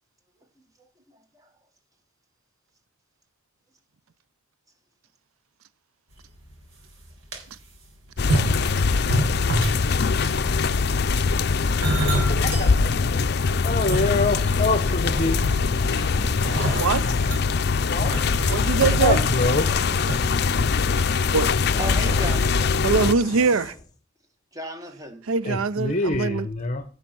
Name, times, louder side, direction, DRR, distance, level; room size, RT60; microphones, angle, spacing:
voice 1, 0.8-1.5 10.4-11.2 12.2-13.5 14.2-14.6 21.8-22.8 24.5-25.2, right 1 dB, 15° right, 1.8 m, -39 dB
sound 1, 6.4-6.5 7.0-7.4 8.2-9.9 10.2-10.5 11.3-12.7 13.2-13.3 13.7-14.7 15.1-15.9 16.4-20.2 20.5-20.7 21.0-21.1, right 1 dB, 65° right, 4.0 m, -28 dB
sound 2, 8.2-23.1, left 4 dB, 50° left, 0.5 m, -22 dB
voice 2, 12.3-12.7 13.5-15.4 17.8-18.1 19.0-19.8 25.4-26.8, left 3 dB, 35° left, 0.9 m, -25 dB
sound 3, 15.6-17.5 18.5-20.6 21.0-23.9, left 2 dB, 20° left, 1.4 m, -39 dB
voice 3, 16.7-17.1 18.5-19.2 21.3-21.5 22.8-23.8 25.3-26.5, right 5 dB, 90° right, 0.5 m, -22 dB
16.0 x 5.7 x 6.0 m
head